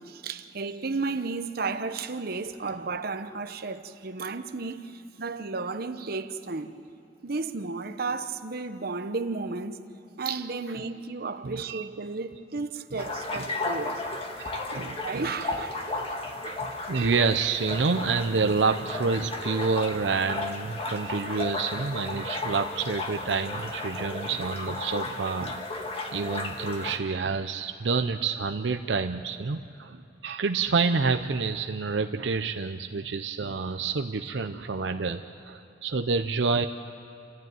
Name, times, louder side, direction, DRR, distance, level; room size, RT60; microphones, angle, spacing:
voice 1, 0.0-6.7 7.2-9.8 10.2-13.9 15.0-16.1, right 4 dB, 60° right, 1.0 m, -33 dB
voice 2, 11.4-11.9 13.0-13.5 13.8-14.0 14.4-15.3 16.4-25.7 26.1-36.7, right 4 dB, 80° right, 0.7 m, -28 dB
sound 1, 13.0-27.0, left 2 dB, 35° left, 1.9 m, -34 dB
28.5 x 14.5 x 9.2 m
head